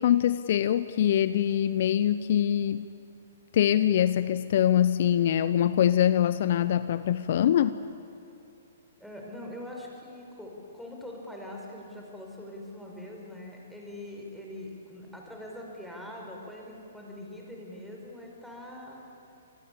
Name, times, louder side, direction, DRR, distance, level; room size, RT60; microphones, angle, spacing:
voice 1, 0.0-2.9 3.5-7.8, left 10 dB, 55° left, 14 dB, 0.8 m, -24 dB
voice 2, 9.0-19.0, left 1 dB, ahead, -1 dB, 5.3 m, -43 dB
26.5 x 20.0 x 8.7 m, 2.7 s
hypercardioid pair, 130°, 0 cm